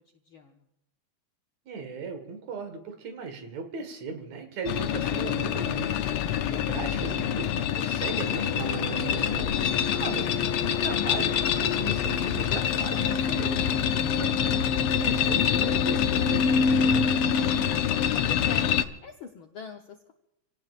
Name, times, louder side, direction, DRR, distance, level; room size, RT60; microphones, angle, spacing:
voice 1, 0.3-0.7 17.6-18.7 19.0-20.1, left 6 dB, 70° left, 3 dB, 1.2 m, -43 dB
voice 2, 1.7-10.3 10.6-17.1, right 4 dB, 65° right, 6 dB, 2.9 m, -38 dB
sound 1, 4.7-18.8, left 8 dB, 90° left, 1.2 m, -26 dB
Bowed string instrument, 8.0-12.5, left 3 dB, 30° left, 1.5 m, -35 dB
28.5 x 17.5 x 2.5 m, 0.88 s
omnidirectional pair, 3.4 m